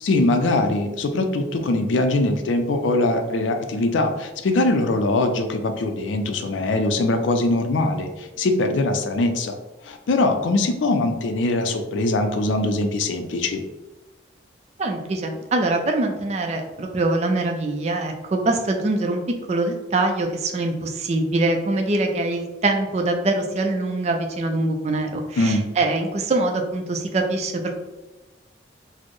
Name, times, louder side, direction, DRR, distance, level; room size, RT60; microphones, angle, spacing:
voice 1, 0.0-9.6 9.8-13.6 25.4-25.7, left 2 dB, 85° left, 6 dB, 0.4 m, -22 dB
voice 2, 14.8-19.2 19.5-27.7, right 2 dB, 35° right, 3 dB, 0.3 m, -23 dB
4.2 x 2.0 x 3.0 m, 1.1 s
head